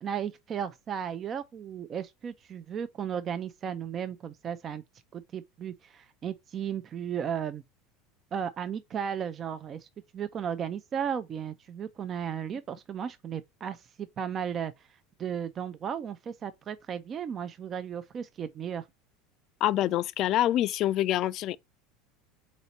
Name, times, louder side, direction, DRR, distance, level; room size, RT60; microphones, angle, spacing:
voice 1, 0.0-4.8 5.1-7.6 8.3-9.9 10.1-14.7 15.2-18.9, right 8 dB, 40° right, 0.4 m, -35 dB
voice 2, 19.6-21.6, left 13 dB, 50° left, 0.3 m, -26 dB
4.2 x 2.7 x 4.0 m
hypercardioid pair, 85°, 0 cm